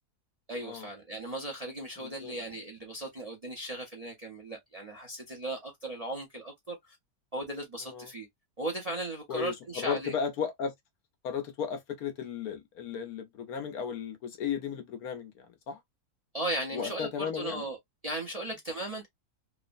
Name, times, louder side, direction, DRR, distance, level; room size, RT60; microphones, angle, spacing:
voice 1, 0.5-7.0 7.3-8.3 8.6-10.1 16.3-17.8 18.0-19.1, right 1 dB, 35° right, 0.6 m, -37 dB
voice 2, 2.0-2.3 7.8-8.1 9.3-10.7 11.2-15.8 16.7-17.6, left 7 dB, 70° left, 1.2 m, -35 dB
3.1 x 2.1 x 2.5 m
omnidirectional pair, 1.6 m